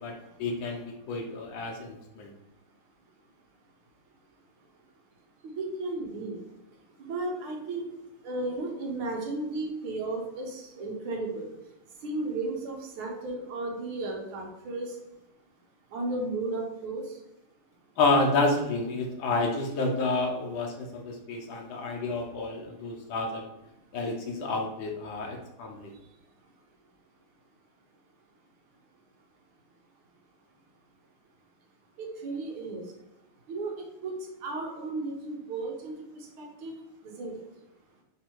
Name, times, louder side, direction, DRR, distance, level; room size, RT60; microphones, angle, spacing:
voice 1, 0.0-2.3 18.0-23.5 23.9-25.9, left 3 dB, 70° left, 1 dB, 1.4 m, -29 dB
voice 2, 5.4-6.4 7.0-7.8 8.2-11.5 12.0-14.9 15.9-17.0 32.0-32.8 33.5-33.7 34.0-34.1 34.4-35.9 36.4-36.7 37.2-37.3, right 2 dB, 80° right, 1 dB, 1.8 m, -34 dB
4.2 x 2.8 x 4.4 m, 0.88 s
omnidirectional pair, 2.3 m